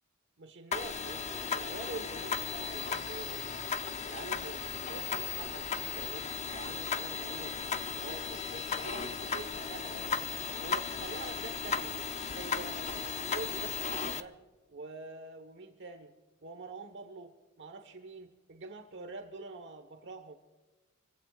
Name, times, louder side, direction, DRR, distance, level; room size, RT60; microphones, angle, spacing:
voice 1, 0.4-3.6 4.1-6.3 6.5-7.6 8.0-10.3 10.6-12.0 12.3-14.4 14.7-16.1 16.4-17.3 17.6-20.4, right 3 dB, 55° right, 6 dB, 1.3 m, -45 dB
sound 1, 0.7-14.2, left 6 dB, 30° left, 0.7 m, -36 dB
26.5 x 16.5 x 2.5 m, 1.2 s
head